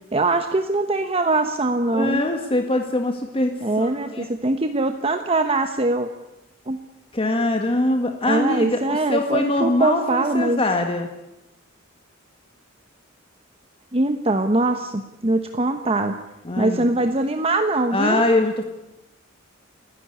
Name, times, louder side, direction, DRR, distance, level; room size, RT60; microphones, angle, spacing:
voice 1, 0.1-2.2 3.6-6.1 6.7-6.8 8.2-10.6 13.9-16.1 16.6-18.2, right 2 dB, 30° right, 7 dB, 1.1 m, -22 dB
voice 2, 1.9-4.3 7.1-11.1 16.4-16.8 17.9-18.6, left 2 dB, 30° left, 4 dB, 1.7 m, -23 dB
30.0 x 11.0 x 10.0 m, 0.96 s
head